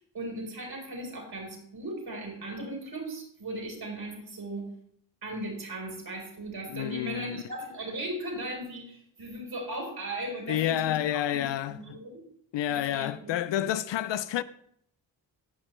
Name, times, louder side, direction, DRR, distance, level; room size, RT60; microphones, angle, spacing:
voice 1, 0.1-4.7 5.2-12.1 12.7-13.3, right 1 dB, 50° right, 4.4 m, -37 dB
voice 2, 6.7-7.4 10.5-12.0 12.5-14.4, left 12 dB, 65° left, 0.6 m, -29 dB
17.0 x 6.0 x 3.3 m
supercardioid pair, 50°, 49 cm